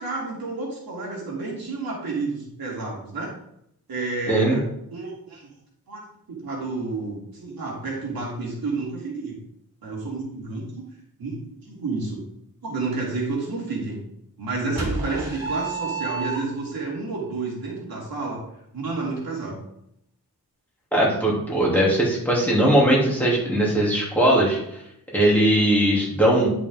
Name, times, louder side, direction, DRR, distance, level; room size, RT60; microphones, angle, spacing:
voice 1, 0.0-3.3 3.9-4.6 4.9-5.5 5.9-6.0 6.3-9.4 9.8-10.9 11.2-12.2 12.6-14.0 14.4-18.4 18.7-19.6, right 3 dB, 75° right, -3 dB, 3.1 m, -30 dB
voice 2, 4.3-4.6 20.9-24.6 25.1-26.5, right 1 dB, 5° left, -5 dB, 3.0 m, -19 dB
sound 1, 14.8-16.9, right 3 dB, 45° right, 2.4 m, -29 dB
10.5 x 5.9 x 3.7 m, 0.75 s
wide cardioid pair, 135°, 36 cm